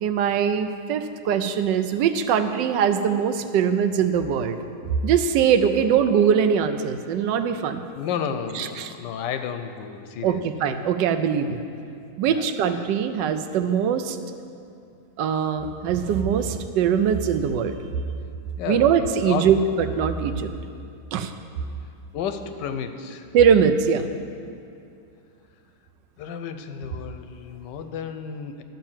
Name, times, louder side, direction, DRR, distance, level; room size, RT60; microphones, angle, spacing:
voice 1, 0.0-4.6 5.0-7.8 8.5-8.9 10.2-11.6 12.2-14.2 15.2-17.8 18.7-20.5 21.1-21.3 23.3-24.1, right 7 dB, 85° right, 9 dB, 1.3 m, -22 dB
voice 2, 7.9-10.7 12.3-12.5 18.6-19.5 22.1-23.3 26.2-28.6, left 7 dB, 85° left, 8 dB, 1.3 m, -32 dB
12.0 x 5.7 x 7.3 m, 2.5 s
omnidirectional pair, 1.9 m